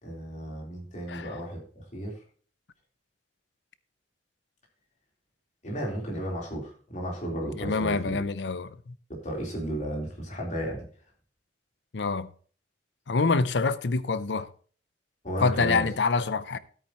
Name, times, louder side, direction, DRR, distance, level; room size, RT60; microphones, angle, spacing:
voice 1, 0.0-2.2 5.6-8.2 9.1-10.9 15.2-15.9, equal, 45° left, 3.8 m, -34 dB
voice 2, 7.6-8.9 11.9-12.3 13.1-14.5 15.4-16.6, left 4 dB, 85° left, 0.6 m, -26 dB
13.5 x 8.7 x 3.0 m
head